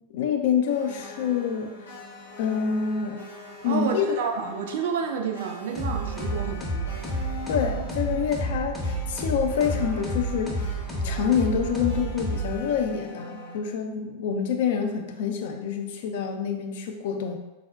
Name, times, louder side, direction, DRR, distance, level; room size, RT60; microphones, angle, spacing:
voice 1, 0.1-1.7 2.4-3.3 3.6-4.2 7.5-17.4, left 7 dB, 55° left, 3 dB, 0.3 m, -27 dB
sound 1, 0.7-13.6, left 2 dB, 80° left, 0.7 m, -42 dB
voice 2, 3.6-7.0, right 6 dB, 55° right, 4 dB, 0.3 m, -30 dB
sound 2, 5.7-12.9, right 1 dB, ahead, 0.6 m, -30 dB
3.5 x 2.0 x 2.3 m, 1.1 s
figure-of-eight pair, 90°, 0 cm